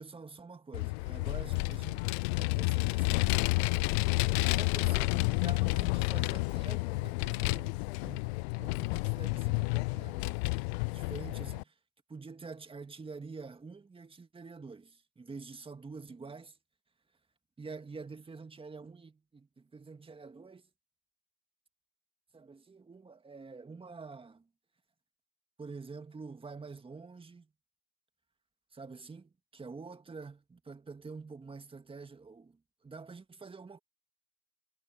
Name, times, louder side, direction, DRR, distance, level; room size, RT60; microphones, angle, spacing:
voice 1, 0.0-2.0 2.4-3.4 4.4-8.3 8.6-10.4 10.9-11.8 12.1-16.6 17.6-20.7 22.3-24.5 25.6-27.5 28.7-33.8, right 4 dB, 15° right, 2.1 m, -47 dB
Vehicle, 0.7-11.6, left 26 dB, 55° left, 0.4 m, -30 dB
hypercardioid pair, 90°, 40 cm